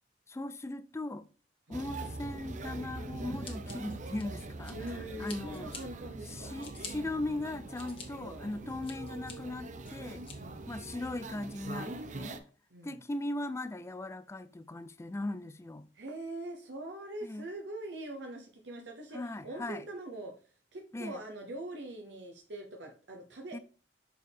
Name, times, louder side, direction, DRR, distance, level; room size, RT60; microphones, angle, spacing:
voice 1, 0.3-1.3 1.7-5.7 6.3-10.2 10.7-12.4 12.8-15.9 17.2-17.4 19.1-19.8 20.9-21.2 23.5-23.6, left 2 dB, 15° left, 0.3 m, -39 dB
sound 1, 1.7-12.4, right 2 dB, 45° right, 0.6 m, -43 dB
Scissors, 3.4-4.9 5.3-5.8 6.3-6.9 7.5-8.1 8.5-9.3 9.8-10.4, left 5 dB, 30° left, 1.3 m, -47 dB
voice 2, 4.7-6.5 8.2-8.5 10.4-10.7 12.7-13.0 15.9-20.3 20.7-23.6, right 1 dB, 85° right, 0.9 m, -43 dB
6.3 x 4.6 x 3.5 m
head